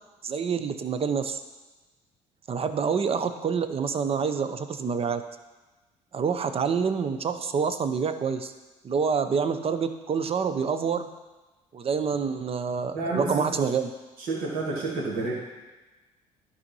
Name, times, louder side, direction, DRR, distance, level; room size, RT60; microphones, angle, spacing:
voice 1, 0.2-1.4 2.5-5.2 6.1-8.5 8.8-11.1 11.7-13.9, right 6 dB, 40° right, 10 dB, 0.7 m, -27 dB
voice 2, 12.9-13.6 14.2-15.3, right 3 dB, 70° right, -5 dB, 2.3 m, -30 dB
11.0 x 4.2 x 5.5 m, 1.2 s
supercardioid pair, 70°, 15 cm